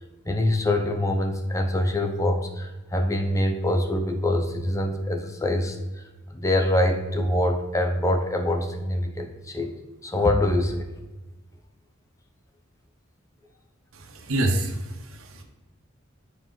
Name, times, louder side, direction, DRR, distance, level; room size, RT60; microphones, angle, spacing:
voice 1, 0.3-6.0 6.3-9.7 10.0-10.8, left 1 dB, 15° left, 4 dB, 0.6 m, -24 dB
voice 2, 13.9-15.4, right 1 dB, 85° right, 4 dB, 1.0 m, -27 dB
7.0 x 4.5 x 3.9 m, 1.1 s
head